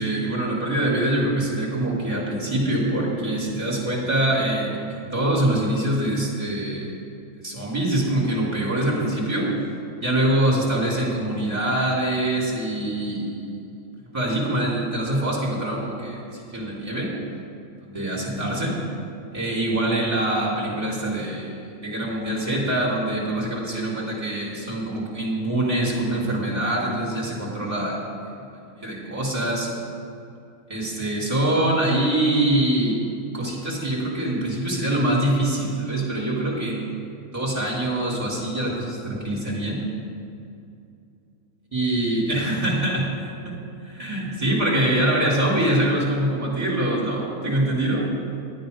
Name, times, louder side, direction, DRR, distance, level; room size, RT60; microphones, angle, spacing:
voice 1, 0.0-6.9 7.4-9.5 10.0-13.5 14.1-17.1 17.8-18.8 19.3-28.1 28.8-29.7 30.7-33.0 33.3-37.0 37.3-39.8 41.7-43.5 43.8-48.1, right 1 dB, 20° right, -5 dB, 3.1 m, -24 dB
11.0 x 9.5 x 5.2 m, 2.6 s
omnidirectional pair, 1.6 m